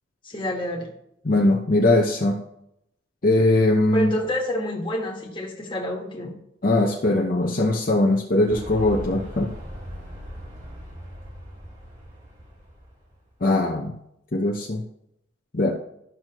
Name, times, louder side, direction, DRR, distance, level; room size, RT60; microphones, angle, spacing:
voice 1, 0.2-0.9 3.9-6.3, left 1 dB, 25° left, 0 dB, 1.5 m, -28 dB
voice 2, 1.2-2.4 3.2-4.1 6.6-9.5 13.4-13.9 14.3-14.8 15.5-15.7, left 2 dB, 45° left, 0 dB, 0.7 m, -20 dB
sound 1, 8.5-13.3, equal, 45° right, 2.9 m, -39 dB
12.5 x 6.1 x 3.0 m, 0.78 s
head